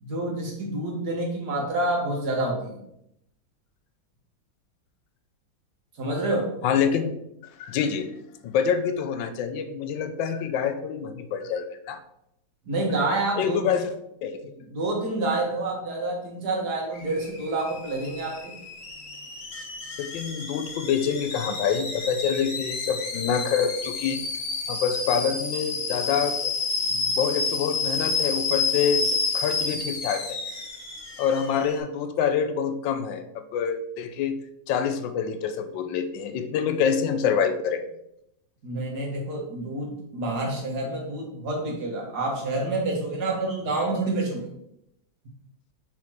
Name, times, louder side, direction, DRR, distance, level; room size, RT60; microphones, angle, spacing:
voice 1, 0.0-2.8 6.0-6.5 12.7-13.6 14.7-18.6 38.6-44.5, right 2 dB, 60° right, -1 dB, 2.0 m, -28 dB
voice 2, 6.6-7.1 7.6-8.1 8.4-12.0 13.4-13.9 14.2-14.4 20.0-24.2 24.7-26.5 26.9-30.4 31.2-34.4 34.7-37.8, left 7 dB, 90° left, 9 dB, 1.4 m, -26 dB
Alarm / Boiling, 16.9-31.8, left 4 dB, 50° left, 1.4 m, -30 dB
5.6 x 4.4 x 4.6 m, 0.79 s
omnidirectional pair, 2.0 m